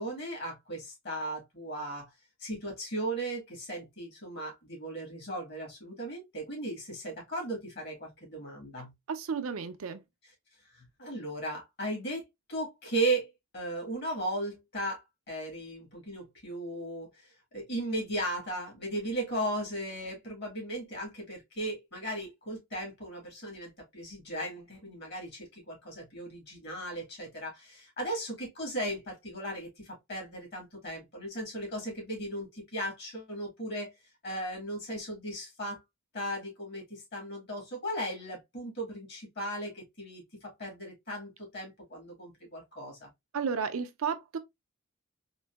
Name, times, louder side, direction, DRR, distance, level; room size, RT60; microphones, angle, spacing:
voice 1, 0.0-2.1 2.4-8.9 10.2-10.3 10.7-12.2 12.5-33.9 34.2-35.8 36.1-43.1, right 1 dB, 50° left, 1.5 m, -36 dB
voice 2, 9.1-10.0 43.3-44.4, right 6 dB, 70° right, 0.5 m, -33 dB
3.7 x 2.5 x 2.3 m
head